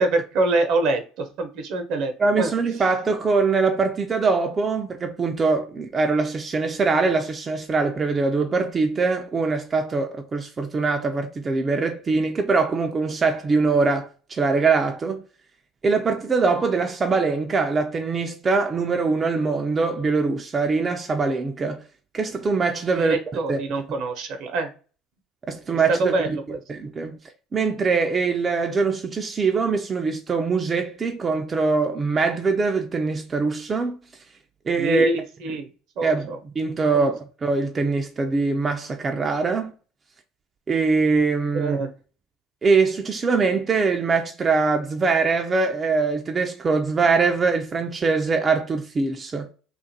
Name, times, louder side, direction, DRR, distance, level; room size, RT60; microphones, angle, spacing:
voice 1, 0.0-2.5 22.9-24.7 25.9-26.6 34.8-35.7 36.0-36.4 36.9-37.1 41.5-41.9, right 2 dB, 65° right, 0.7 m, -25 dB
voice 2, 2.2-15.2 15.8-21.8 22.1-23.2 23.5-23.6 25.5-26.4 26.7-27.2 27.5-34.0 34.7-35.1 36.0-39.7 40.7-41.8 42.6-49.5, right 4 dB, 30° right, 0.4 m, -23 dB
2.5 x 2.4 x 2.7 m
supercardioid pair, 85°, 0 cm